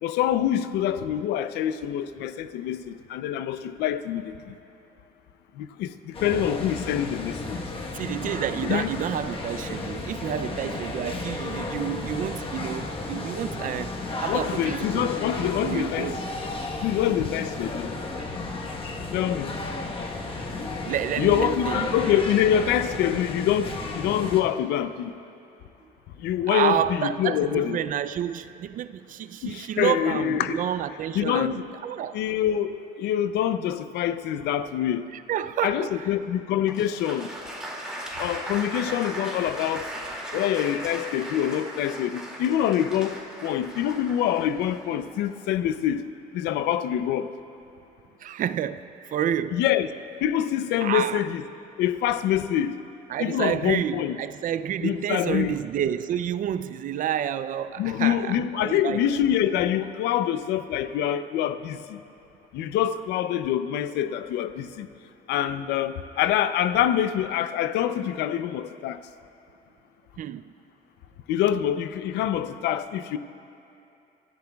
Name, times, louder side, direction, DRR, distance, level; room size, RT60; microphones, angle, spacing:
voice 1, 0.0-4.5 5.6-7.6 8.6-8.9 14.3-16.1 16.8-17.9 19.1-19.6 21.2-25.1 26.2-27.8 29.4-30.6 31.1-31.7 32.1-35.1 35.6-37.3 38.2-39.9 40.3-46.0 46.3-47.3 49.5-49.9 50.2-51.4 51.8-52.8 53.2-54.2 54.8-55.6 57.8-62.0 62.5-64.9 65.3-69.0 71.3-73.2, left 10 dB, 80° left, 0.6 m, -25 dB
sound 1, 6.1-24.4, left 2 dB, 30° left, 1.2 m, -33 dB
voice 2, 7.9-13.9 14.2-15.1 15.4-16.2 20.9-22.1 26.5-32.2 35.1-36.1 48.2-49.6 50.8-51.3 53.1-59.0 70.2-70.5, right 10 dB, 50° right, 0.4 m, -29 dB
Applause, 36.7-45.6, right 1 dB, 5° right, 2.3 m, -37 dB
28.0 x 14.0 x 2.3 m
cardioid pair, 110°, 17 cm